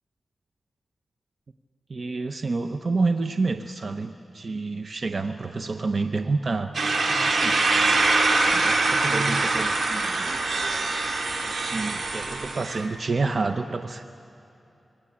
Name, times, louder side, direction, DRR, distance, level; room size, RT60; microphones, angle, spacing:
voice 1, 1.9-6.7 7.1-7.6 8.5-10.9 11.5-14.1, right 3 dB, 55° right, 7 dB, 0.8 m, -29 dB
sound 1, 6.7-12.8, right 3 dB, 75° right, 2.9 m, -24 dB
27.0 x 21.5 x 8.6 m, 2.9 s
cardioid pair, 70°, 0 cm